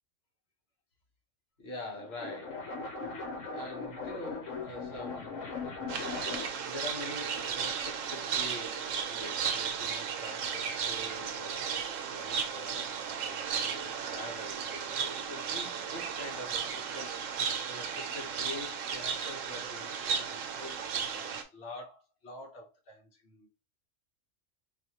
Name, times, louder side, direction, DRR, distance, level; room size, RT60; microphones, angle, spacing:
voice 1, 1.6-2.7 3.5-5.5 6.7-11.7 12.1-17.2 17.6-23.5, left 1 dB, 55° left, 1.2 m, -45 dB
sound 1, 1.9-6.7, left 4 dB, 75° left, 1.2 m, -39 dB
sound 2, 5.9-21.4, right 6 dB, 85° right, 1.0 m, -35 dB
4.1 x 2.5 x 2.8 m
omnidirectional pair, 1.3 m